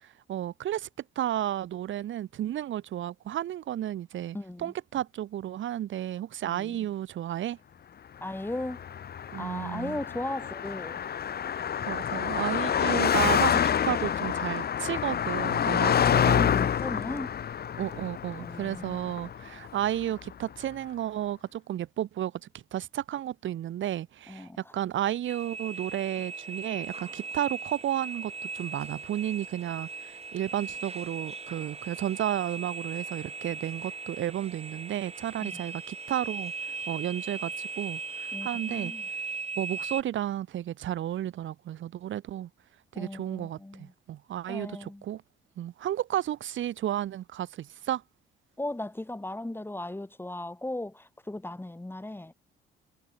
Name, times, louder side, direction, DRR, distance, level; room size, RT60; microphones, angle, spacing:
voice 1, 0.3-0.9 1.2-7.6 9.3-10.0 11.5-16.5 17.8-36.5 36.9-38.9 39.6-42.5 42.9-45.2 45.6-48.0, right 12 dB, 75° right, 6.1 m, -32 dB
voice 2, 4.3-4.7 6.4-6.9 8.2-8.8 9.4-11.0 15.8-17.3 18.4-19.0 24.3-24.6 35.4-35.6 38.3-39.1 42.9-43.9 44.5-45.0 48.6-52.3, left 1 dB, 10° left, 6.6 m, -37 dB
Car passing by, 8.5-20.0, left 8 dB, 50° left, 1.7 m, -28 dB
sound 1, 25.3-40.0, right 4 dB, 30° right, 6.7 m, -38 dB
cardioid pair, 90°, 20 cm